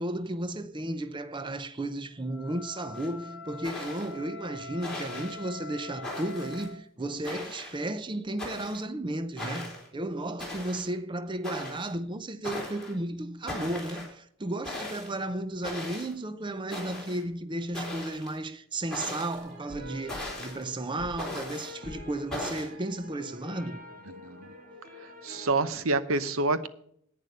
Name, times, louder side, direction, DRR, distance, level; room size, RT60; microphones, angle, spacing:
voice 1, 0.0-23.8, right 1 dB, 25° right, 0.6 m, -34 dB
Wind instrument woodwind instrument, 2.2-6.9, left 3 dB, 65° left, 0.8 m, -44 dB
sound 1, 3.0-3.1 3.6-4.2 4.8-5.3 6.0-6.6 7.2-7.8 8.4-8.8 9.4-9.9 10.4-10.9 11.4-11.9 12.4-12.9 13.5-14.1 14.6-15.1 15.6-16.1 16.7-17.2 17.7-18.4 18.9-19.4 20.1-20.6 21.2-21.7 22.3-22.7, left 1 dB, 5° left, 4.1 m, -38 dB
sound 2, 19.3-25.6, left 1 dB, 45° right, 2.5 m, -46 dB
voice 2, 25.0-26.7, right 3 dB, 90° right, 0.8 m, -28 dB
10.5 x 9.4 x 5.4 m
head